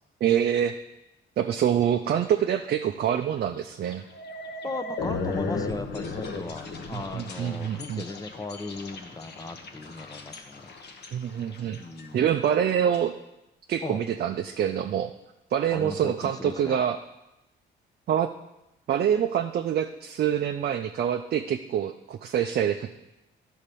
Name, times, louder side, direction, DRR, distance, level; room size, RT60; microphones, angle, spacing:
voice 1, 0.2-0.7 1.4-4.0 6.9-8.0 11.1-11.8 12.1-13.1 13.7-15.1 15.5-17.0 18.1-18.3 18.9-22.9, right 9 dB, 55° right, 6 dB, 0.5 m, -26 dB
sound 1, 1.5-1.8 2.2-2.6 3.0-3.1 3.9-13.0, left 3 dB, 60° left, 1.1 m, -36 dB
voice 2, 4.6-10.7 11.8-12.3 13.8-14.0 15.7-16.8, left 3 dB, 20° left, 8 dB, 0.7 m, -37 dB
9.8 x 4.2 x 6.9 m, 0.92 s
cardioid pair, 90°, 20 cm